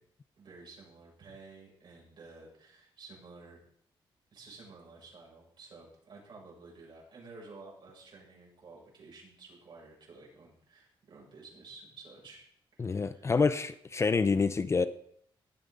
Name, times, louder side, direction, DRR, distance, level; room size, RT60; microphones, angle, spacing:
voice 1, 0.4-3.6 4.3-12.4 12.8-13.3, right 3 dB, 60° right, -3 dB, 7.0 m, -52 dB
voice 2, 12.8-14.9, left 4 dB, 30° left, 12 dB, 0.6 m, -27 dB
18.5 x 8.9 x 4.0 m, 0.68 s
cardioid pair, 110°, 9 cm